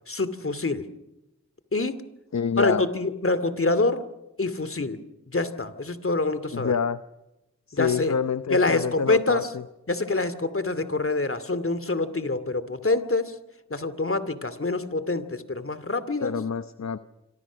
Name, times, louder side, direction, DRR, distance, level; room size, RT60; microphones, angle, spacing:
voice 1, 0.1-0.9 1.7-2.0 2.6-4.0 4.4-5.0 5.3-6.7 7.7-8.1 8.5-9.5 9.9-13.3 13.7-16.3, left 3 dB, 45° left, 13 dB, 2.5 m, -26 dB
voice 2, 2.3-2.8 6.5-7.0 7.7-9.6 16.2-17.0, left 6 dB, 65° left, 11 dB, 0.9 m, -27 dB
26.5 x 25.5 x 6.3 m, 0.95 s
wide cardioid pair, 60°, 29 cm